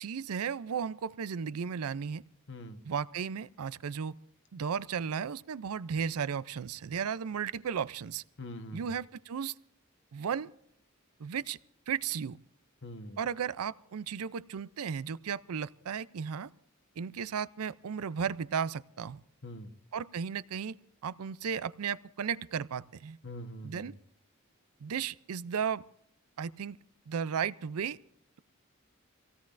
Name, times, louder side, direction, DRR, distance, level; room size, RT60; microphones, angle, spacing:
voice 1, 0.0-2.2 2.8-4.1 4.5-8.2 8.7-9.6 10.1-10.5 11.2-11.6 11.9-12.4 13.2-16.5 17.0-19.2 19.9-20.8 21.0-23.2 23.6-23.9 24.8-25.8 26.4-26.8 27.1-28.0, right 7 dB, 90° right, 18 dB, 0.5 m, -34 dB
voice 2, 2.5-2.8 8.4-8.8 12.8-13.2 19.4-19.7 23.2-24.0, left 1 dB, 55° left, 7 dB, 1.2 m, -43 dB
26.0 x 17.0 x 2.5 m, 0.69 s
head